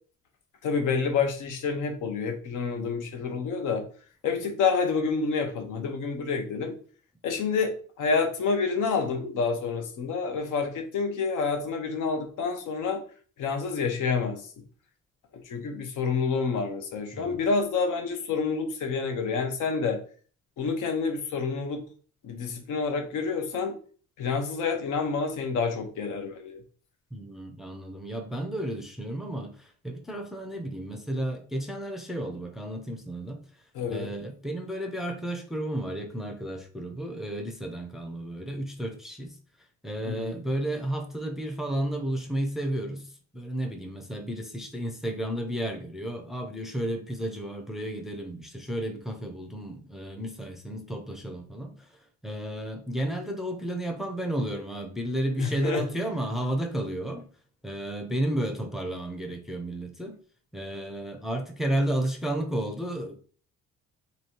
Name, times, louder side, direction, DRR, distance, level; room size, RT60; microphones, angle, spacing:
voice 1, 0.6-3.8 4.2-6.8 7.2-7.7 8.0-13.0 13.4-14.4 15.5-20.0 20.6-21.8 22.2-23.8 24.2-26.6 33.7-34.1 40.1-40.3 55.4-55.8, left 5 dB, 75° left, 0.9 m, -28 dB
voice 2, 27.1-33.4 33.9-39.4 39.8-51.9 52.2-57.2 57.6-60.2 60.5-63.2, right 1 dB, ahead, 0.5 m, -32 dB
3.1 x 2.7 x 4.3 m
cardioid pair, 130°, 31 cm